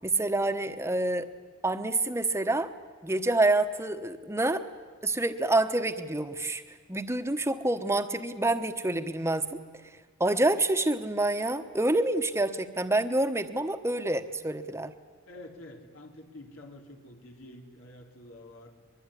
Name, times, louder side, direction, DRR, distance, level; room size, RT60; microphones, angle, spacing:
voice 1, 0.0-1.3 1.6-2.7 3.0-4.6 5.0-9.6 10.2-14.9, right 2 dB, 15° right, 9 dB, 1.1 m, -27 dB
voice 2, 15.3-18.8, left 1 dB, 90° left, 2 dB, 3.5 m, -48 dB
23.5 x 22.0 x 9.9 m, 1.5 s
head